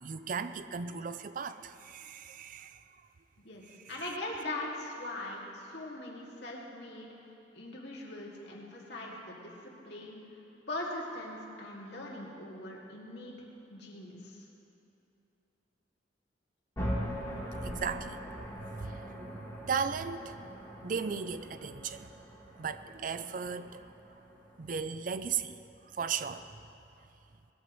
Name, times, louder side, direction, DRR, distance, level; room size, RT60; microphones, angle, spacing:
voice 1, 0.0-2.8 17.6-18.2 18.8-20.5 20.8-22.1 22.6-23.9 24.6-25.6 26.0-26.5, right 6 dB, 50° right, 12 dB, 0.5 m, -36 dB
voice 2, 3.9-7.1 7.5-9.5 9.8-10.2 10.7-13.3 13.7-14.5, left 1 dB, 65° left, -3 dB, 2.5 m, -41 dB
sound 1, 16.8-24.8, equal, 15° left, 3.5 m, -41 dB
19.5 x 14.0 x 3.2 m, 2.8 s
head